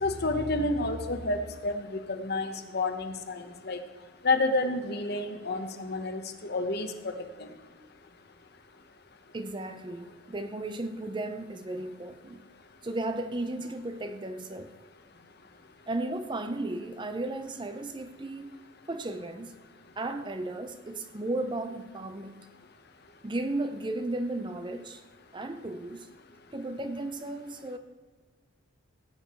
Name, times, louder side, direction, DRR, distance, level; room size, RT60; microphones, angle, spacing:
voice 1, 0.0-3.8 4.2-7.1 7.4-7.5, left 2 dB, 50° left, 7 dB, 1.1 m, -30 dB
voice 2, 9.3-12.5 12.8-14.7 15.9-18.5 18.9-19.5 20.0-22.5 23.2-25.0 25.3-26.1 26.5-27.8, right 2 dB, 20° right, 9 dB, 0.5 m, -35 dB
17.0 x 9.0 x 4.4 m, 1.4 s
head